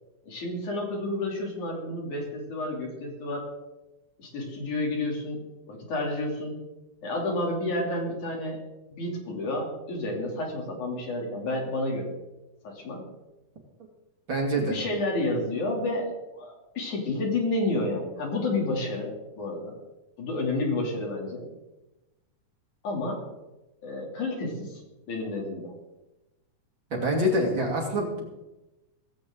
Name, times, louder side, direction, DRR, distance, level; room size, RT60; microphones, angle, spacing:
voice 1, 0.2-3.5 4.2-6.6 7.0-8.6 8.9-12.1 12.6-13.0 14.5-19.7 20.2-21.5 22.8-23.2 23.8-24.8 25.1-25.7, left 2 dB, 65° left, 0 dB, 4.6 m, -30 dB
voice 2, 14.3-14.8 26.9-28.4, equal, 40° right, -1 dB, 3.1 m, -26 dB
17.5 x 16.5 x 3.9 m, 1.0 s
omnidirectional pair, 3.7 m